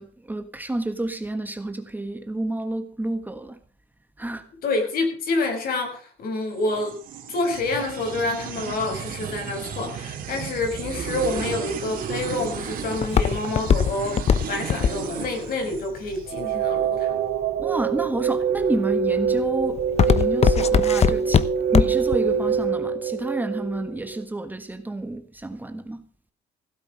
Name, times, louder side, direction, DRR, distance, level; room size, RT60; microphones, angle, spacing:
voice 1, 0.0-3.6 4.2-4.5 17.6-26.1, right 2 dB, 10° right, 1.4 m, -30 dB
voice 2, 4.6-7.0 7.3-17.2, left 2 dB, 60° left, 6.0 m, -28 dB
sound 1, 6.5-16.2, right 8 dB, 55° right, 2.7 m, -34 dB
Walk footsteps, 11.9-17.0 17.6-18.1 18.6-18.9 19.3-22.2 22.5-22.6, left 7 dB, 40° left, 0.9 m, -20 dB
sound 2, 16.3-24.2, right 7 dB, 80° right, 2.9 m, -24 dB
16.5 x 8.4 x 6.6 m
cardioid pair, 110°, 17 cm